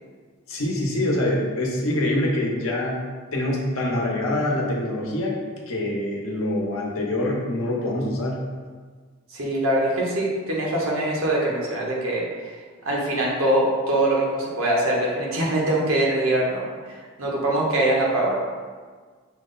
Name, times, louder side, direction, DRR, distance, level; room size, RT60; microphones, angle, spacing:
voice 1, 0.5-3.0 3.3-5.3 5.7-8.4, left 1 dB, 90° left, -2 dB, 0.9 m, -25 dB
voice 2, 9.3-12.5 12.8-18.3, right 1 dB, 80° right, -3 dB, 1.1 m, -23 dB
6.0 x 2.1 x 3.8 m, 1.5 s
head